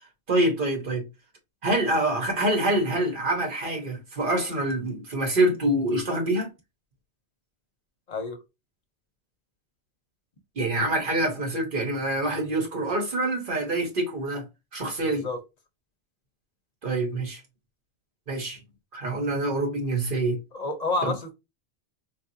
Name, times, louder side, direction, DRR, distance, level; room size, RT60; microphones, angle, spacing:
voice 1, 0.3-1.0 1.6-6.5 10.6-14.4 14.7-15.3 16.8-17.4 18.3-18.6 18.9-20.4, right 1 dB, 55° right, 1.2 m, -26 dB
voice 2, 15.0-15.4 20.5-21.3, left 3 dB, 45° left, 0.8 m, -29 dB
4.1 x 2.4 x 2.7 m
omnidirectional pair, 1.1 m